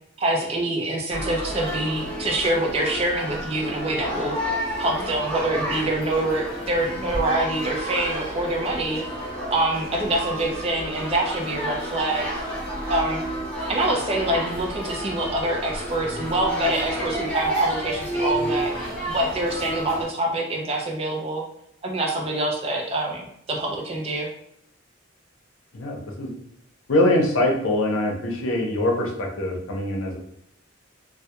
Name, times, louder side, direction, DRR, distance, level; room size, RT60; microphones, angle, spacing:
voice 1, 0.2-4.4 4.8-9.1 9.5-12.3 12.9-13.2 13.7-18.7 19.1-21.4 21.8-24.3, right 1 dB, 30° right, 1 dB, 0.4 m, -25 dB
sound 1, 1.1-20.0, equal, 5° left, 0.8 m, -30 dB
voice 2, 25.7-26.3 26.9-30.2, left 1 dB, 90° left, 0 dB, 0.6 m, -23 dB
2.2 x 2.1 x 2.8 m, 0.72 s
head